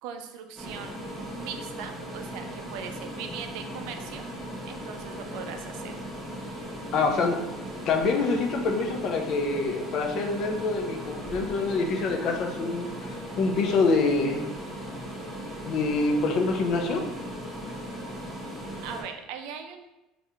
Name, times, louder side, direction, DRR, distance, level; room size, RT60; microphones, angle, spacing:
voice 1, 0.0-1.0 1.3-4.2 4.7-5.9 18.8-19.9, right 7 dB, 75° right, 6 dB, 0.4 m, -40 dB
sound 1, 0.6-19.0, equal, 5° right, 0.8 m, -38 dB
voice 2, 6.9-7.4 7.9-14.5 15.6-17.0, left 3 dB, 50° left, 3 dB, 0.5 m, -26 dB
3.4 x 2.5 x 2.7 m, 0.94 s
cardioid pair, 130°, 0 cm